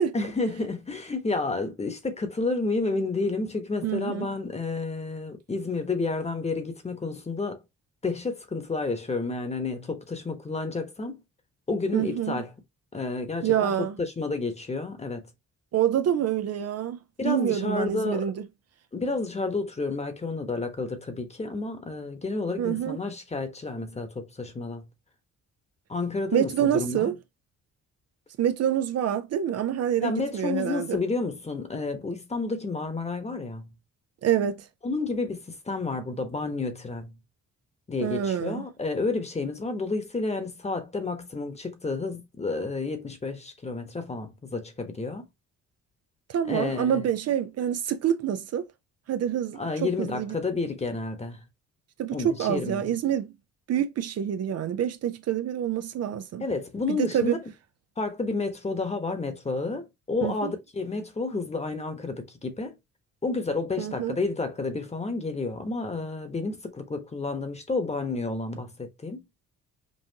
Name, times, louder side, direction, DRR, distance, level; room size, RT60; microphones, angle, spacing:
voice 1, 0.1-7.6 8.0-11.2 11.7-12.5 12.9-13.7 14.2-15.3 17.2-18.2 18.9-24.9 25.9-27.1 30.0-33.7 34.8-37.2 37.9-45.3 46.5-47.0 49.6-51.4 52.1-52.9 56.4-57.4 58.0-62.7 63.2-69.2, left 3 dB, 20° left, 1.1 m, -30 dB
voice 2, 3.8-4.3 11.9-12.4 13.4-14.0 15.7-18.5 22.6-23.0 26.3-27.2 28.4-31.0 34.2-34.7 38.0-38.7 46.3-48.7 49.1-50.4 52.0-53.3 53.7-56.4 56.9-57.4 60.2-60.5 63.8-64.2, right 9 dB, 55° right, 0.5 m, -27 dB
5.4 x 2.5 x 2.8 m
cardioid pair, 90°, 30 cm